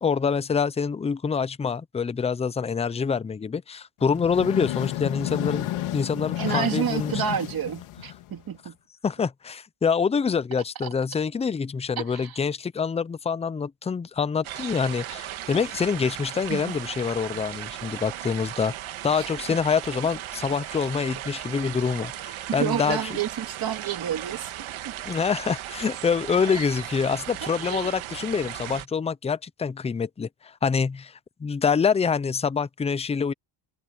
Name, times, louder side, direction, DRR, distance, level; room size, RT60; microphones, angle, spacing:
voice 1, 0.0-5.7 5.9-7.1 9.0-18.7 19.0-23.2 25.1-33.3, left 6 dB, 15° left, 0.3 m, -26 dB
sound 1, 4.0-8.6, left 14 dB, 90° left, 2.5 m, -31 dB
voice 2, 6.4-8.8 12.0-12.4 16.5-16.7 19.1-19.3 22.5-24.5 24.8-24.9 26.5-26.6 27.4-27.9, right 9 dB, 45° right, 2.7 m, -30 dB
sound 2, 14.4-28.9, right 13 dB, 70° right, 1.7 m, -37 dB
cardioid pair, 150°, 49 cm